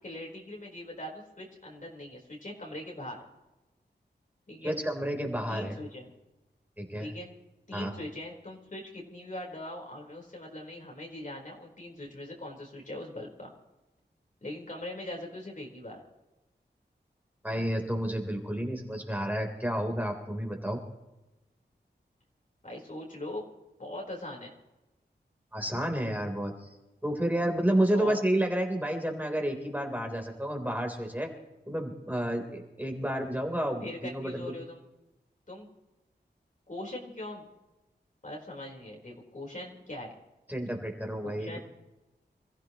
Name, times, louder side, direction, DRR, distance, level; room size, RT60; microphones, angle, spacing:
voice 1, 0.0-3.2 4.5-4.7 5.5-6.1 7.0-7.3 7.7-13.5 14.4-16.0 22.6-23.5 23.8-24.5 27.9-28.2 33.8-34.8 35.5-35.7 36.7-37.4 38.2-40.1 41.2-41.6, left 1 dB, 45° left, -1 dB, 4.3 m, -41 dB
voice 2, 4.6-5.7 6.8-7.1 7.7-7.9 17.4-20.8 25.5-26.5 27.0-31.3 31.7-34.5 40.5-41.6, right 1 dB, 10° right, 2 dB, 3.8 m, -30 dB
27.5 x 15.0 x 3.1 m, 1.0 s
wide cardioid pair, 60°, 18 cm